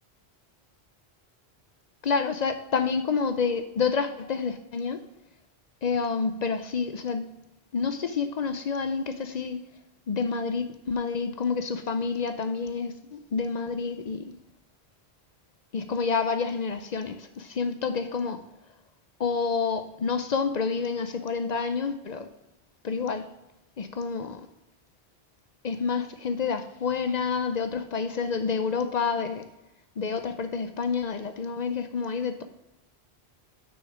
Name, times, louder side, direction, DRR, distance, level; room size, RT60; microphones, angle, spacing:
voice 1, 2.0-5.1 5.8-7.3 7.7-9.6 10.1-14.3 15.7-18.4 19.2-22.3 22.8-23.3 23.8-24.4 25.6-29.5 30.0-32.4, left 5 dB, 50° left, 0.6 m, -28 dB
6.2 x 6.2 x 4.9 m
omnidirectional pair, 1.1 m